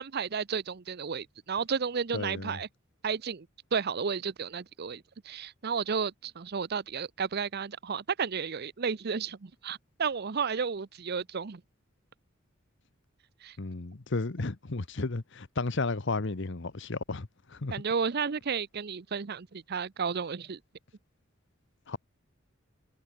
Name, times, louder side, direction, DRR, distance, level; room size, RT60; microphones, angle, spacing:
voice 1, 0.0-2.7 3.0-3.5 3.7-11.6 13.4-13.6 17.7-20.6, right 6 dB, 50° right, 0.6 m, -32 dB
voice 2, 2.1-2.6 13.6-17.7 21.9-22.0, left 3 dB, 60° left, 1.0 m, -33 dB
head